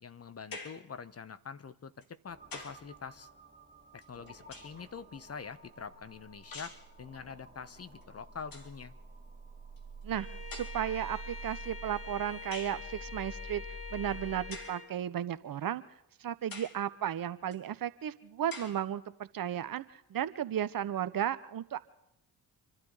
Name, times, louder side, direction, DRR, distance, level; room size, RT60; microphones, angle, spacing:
voice 1, 0.0-3.3 3.9-8.9, left 6 dB, 30° left, 13 dB, 1.2 m, -45 dB
sound 1, 0.5-0.9 2.0-2.9 4.0-4.9 6.5-6.9 8.0-8.1 8.4-8.8 9.8-9.9 10.5-11.0 12.5-12.8 14.5-14.8 15.5-15.6 16.5-16.8 17.5-17.6 18.5-18.8, left 3 dB, 45° left, 3.2 m, -46 dB
sound 2, 2.3-14.5, right 2 dB, 20° right, 2.8 m, -49 dB
voice 2, 10.0-13.6 13.9-15.8 16.2-21.8, right 10 dB, 45° right, 14 dB, 1.1 m, -34 dB
Bowed string instrument, 10.1-15.0, left 4 dB, 80° left, 1.6 m, -46 dB
27.5 x 12.0 x 4.1 m, 0.82 s
hypercardioid pair, 45°, 46 cm